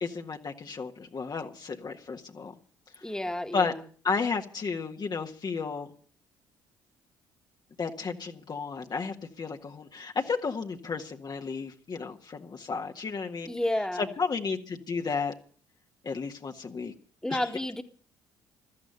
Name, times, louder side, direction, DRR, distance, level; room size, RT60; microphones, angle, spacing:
voice 1, 0.0-2.5 3.5-3.7 4.0-5.9 7.8-13.5 14.0-15.3 16.0-16.9 17.3-17.5, left 5 dB, 40° left, 1.7 m, -33 dB
voice 2, 3.0-3.8 13.4-14.1 17.2-17.8, left 1 dB, 5° left, 1.9 m, -31 dB
16.0 x 13.0 x 6.9 m
hypercardioid pair, 50°, 11 cm